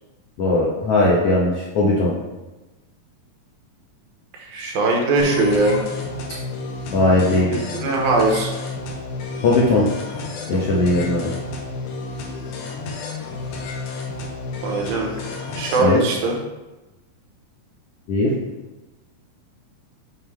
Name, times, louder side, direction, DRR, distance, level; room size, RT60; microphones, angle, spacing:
voice 1, 0.4-2.1 6.9-7.5 9.4-9.8 10.5-11.2 15.8-16.0 18.1-18.3, left 2 dB, 90° left, -5 dB, 1.3 m, -18 dB
voice 2, 4.4-5.8 7.5-8.5 14.6-15.1 15.6-16.4, right 3 dB, 75° right, 0 dB, 2.8 m, -20 dB
sound 1, 5.2-15.9, left 3 dB, 75° left, 1.9 m, -31 dB
7.3 x 5.6 x 3.3 m, 1.1 s
omnidirectional pair, 4.4 m